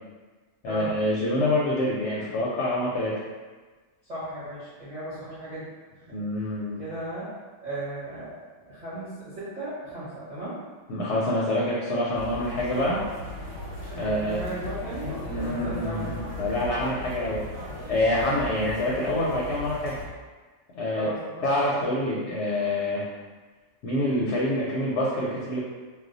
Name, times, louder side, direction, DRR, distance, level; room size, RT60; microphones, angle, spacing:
voice 1, 0.6-3.1 6.1-6.8 10.9-13.0 13.9-14.4 15.3-17.4 17.9-20.0 20.7-21.1 21.4-23.1 23.8-25.6, left 1 dB, 65° left, -5 dB, 0.8 m, -26 dB
voice 2, 4.1-5.7 5.9-6.1 6.8-7.3 7.6-8.3 8.7-10.6 14.0-16.1 20.9-21.9, right 1 dB, 35° right, -12 dB, 1.0 m, -36 dB
sound 1, 12.1-20.1, left 1 dB, 90° right, 1.1 m, -37 dB
2.4 x 2.2 x 3.8 m, 1.4 s
omnidirectional pair, 1.4 m